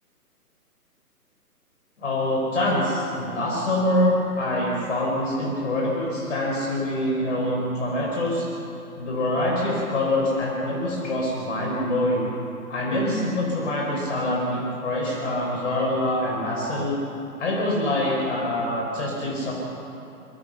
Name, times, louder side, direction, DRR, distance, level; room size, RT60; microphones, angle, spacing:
voice 1, 2.0-8.5 9.0-12.3 12.7-17.0 17.4-19.5, left 1 dB, 50° left, -2 dB, 4.2 m, -25 dB
23.0 x 16.0 x 7.0 m, 2.9 s
figure-of-eight pair, 140°, 47 cm